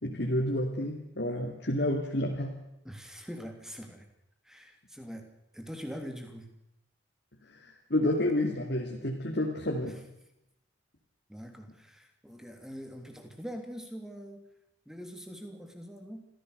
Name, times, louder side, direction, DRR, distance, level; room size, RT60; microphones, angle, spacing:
voice 1, 0.0-2.6 7.4-10.0, left 1 dB, 55° left, 0 dB, 2.8 m, -30 dB
voice 2, 2.8-4.1 4.4-5.3 5.5-6.5 9.8-9.9 11.3-14.4 14.8-16.3, equal, 5° right, 5 dB, 3.2 m, -43 dB
26.0 x 16.0 x 6.8 m, 0.84 s
head